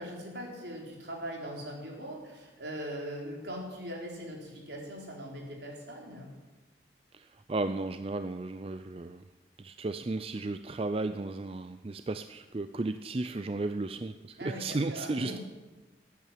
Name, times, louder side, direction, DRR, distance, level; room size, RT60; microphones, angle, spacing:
voice 1, 0.0-6.3 14.4-15.4, equal, 75° right, -1 dB, 4.2 m, -40 dB
voice 2, 7.1-9.2 9.6-15.4, right 2 dB, 30° right, 10 dB, 0.4 m, -34 dB
14.0 x 9.5 x 9.2 m, 1.2 s
head